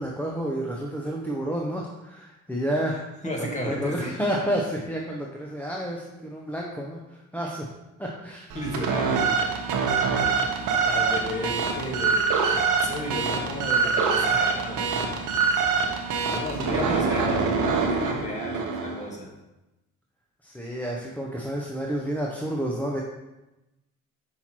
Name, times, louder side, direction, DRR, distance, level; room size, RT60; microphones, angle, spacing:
voice 1, 0.0-3.0 3.4-7.7 8.0-8.5 16.6-17.1 20.4-23.0, equal, 5° left, -2 dB, 0.8 m, -30 dB
voice 2, 3.2-4.1 8.5-9.4 10.1-12.3 12.8-14.9 16.3-19.3, left 1 dB, 25° left, -2 dB, 1.8 m, -33 dB
sound 1, 8.5-19.1, right 5 dB, 85° right, 1.0 m, -25 dB
5.6 x 4.5 x 4.4 m, 0.99 s
cardioid pair, 90°, 30 cm